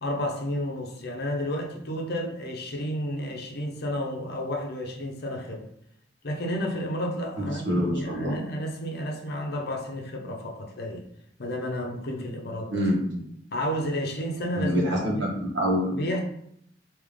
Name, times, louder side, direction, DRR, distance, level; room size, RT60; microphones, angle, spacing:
voice 1, 0.0-5.7 6.2-11.0 11.4-12.9 13.5-15.2 15.9-16.2, equal, 60° left, 1 dB, 0.8 m, -31 dB
voice 2, 7.4-8.4 12.7-13.2 14.5-16.0, equal, 80° right, -3 dB, 1.3 m, -26 dB
3.4 x 2.9 x 3.7 m, 0.71 s
head